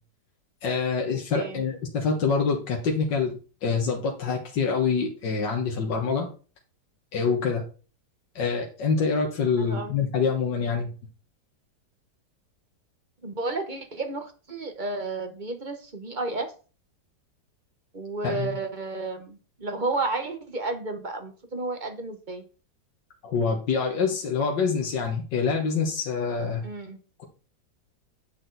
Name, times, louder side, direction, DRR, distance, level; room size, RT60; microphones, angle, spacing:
voice 1, 0.6-6.3 7.1-7.6 8.4-10.9 18.2-18.5 23.2-26.7, left 5 dB, 80° left, 0 dB, 2.0 m, -26 dB
voice 2, 9.6-9.9 13.2-16.5 17.9-22.4 26.6-27.0, right 3 dB, 30° right, 6 dB, 1.1 m, -32 dB
9.6 x 6.2 x 4.1 m, 0.36 s
omnidirectional pair, 1.9 m